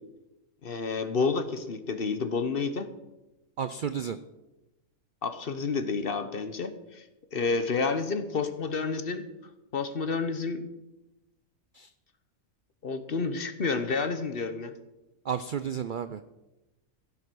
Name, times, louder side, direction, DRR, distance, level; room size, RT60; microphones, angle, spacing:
voice 1, 0.6-2.9 5.2-7.0 7.3-9.3 9.7-10.6 12.8-14.7, left 4 dB, 45° left, 10 dB, 1.0 m, -30 dB
voice 2, 3.6-4.2 11.7-11.9 15.2-16.2, right 7 dB, 60° right, 12 dB, 0.5 m, -32 dB
16.0 x 7.9 x 6.2 m, 1.0 s
omnidirectional pair, 1.4 m